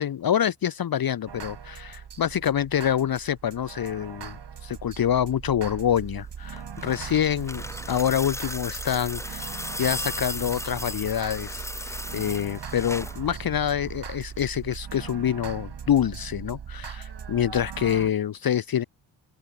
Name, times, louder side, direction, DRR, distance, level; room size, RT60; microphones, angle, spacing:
voice 1, 0.0-18.8, left 9 dB, 50° left, 0.8 m, -26 dB
sound 1, 1.3-18.1, right 7 dB, 60° right, 3.3 m, -39 dB
sound 2, 6.4-13.2 14.5-14.6, left 1 dB, 5° left, 2.0 m, -36 dB
open air
cardioid pair, 70°, 47 cm